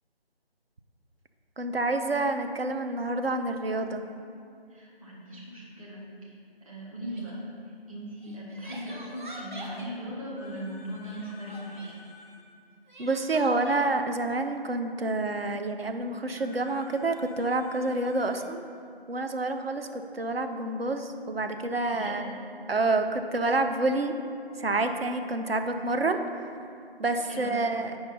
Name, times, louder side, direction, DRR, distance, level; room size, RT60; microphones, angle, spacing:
voice 1, 1.6-4.0 13.0-18.6 19.1-22.3 22.7-24.1 24.6-26.2 27.0-27.9, right 2 dB, 70° right, 6 dB, 0.7 m, -28 dB
voice 2, 4.7-6.4 6.6-7.5 7.9-12.0 21.8-22.3 27.3-27.6, equal, 35° right, -5 dB, 1.6 m, -39 dB
Crying sobbing, 7.1-7.4 8.2-10.0 11.0-12.0 12.9-13.8, right 1 dB, 50° right, 1.1 m, -45 dB
sound 1, 10.4-12.4 16.4-18.4, left 3 dB, 20° right, 0.8 m, -52 dB
7.9 x 5.7 x 4.1 m, 2.4 s
figure-of-eight pair, 160°, 31 cm